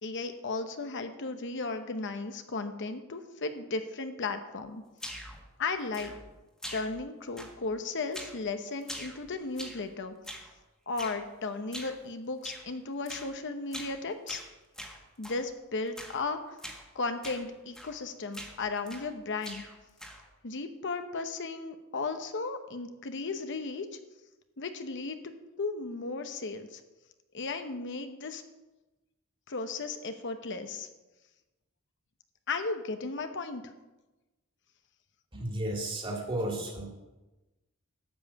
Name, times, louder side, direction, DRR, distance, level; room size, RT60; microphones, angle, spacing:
voice 1, 0.0-4.8 5.6-6.1 6.7-10.1 10.9-14.4 15.2-16.6 16.9-19.6 20.4-23.9 24.6-25.2 25.6-26.8 27.3-28.4 29.5-30.9 32.5-33.6, left 3 dB, 60° left, 8 dB, 0.9 m, -35 dB
sound 1, 5.0-5.4 5.9-6.3 6.6-7.1 7.4-7.8 8.1-8.4 8.8-9.9 10.2-10.5 11.0-11.2 11.7-12.0 12.4-12.7 13.1-13.3 13.7-14.0 14.3-15.4 16.0-16.2 16.6-16.8 17.2-17.5 17.7-18.0 18.3-19.1 19.4-20.3, equal, 5° left, 1.6 m, -43 dB
voice 2, 35.3-36.9, right 1 dB, 25° right, 1 dB, 2.4 m, -33 dB
12.5 x 5.6 x 8.5 m, 1.1 s
head